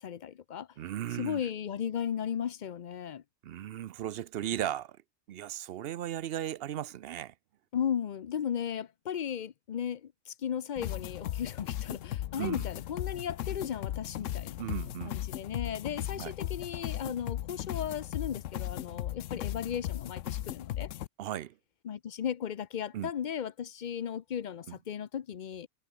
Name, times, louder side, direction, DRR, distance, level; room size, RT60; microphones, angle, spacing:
voice 1, 0.0-0.7 1.2-3.2 7.7-14.6 15.0-20.9 21.8-25.7, left 8 dB, 50° left, 0.6 m, -36 dB
voice 2, 0.8-1.5 3.4-5.0 5.3-7.3 12.4-12.6 14.6-15.2 16.1-16.3 21.2-21.6 22.9-23.1 24.7-24.8, right 11 dB, 60° right, 0.7 m, -36 dB
sound 1, 10.8-21.1, left 13 dB, 75° left, 1.0 m, -37 dB
omnidirectional pair, 1.3 m